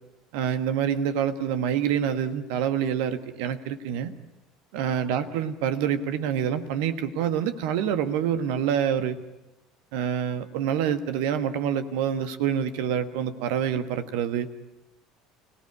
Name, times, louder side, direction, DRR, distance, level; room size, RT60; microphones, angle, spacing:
voice 1, 0.3-4.1 4.7-9.2 9.9-14.5, right 8 dB, 60° right, 10 dB, 1.5 m, -26 dB
30.0 x 18.0 x 9.7 m, 0.99 s
figure-of-eight pair, 65°, 0 cm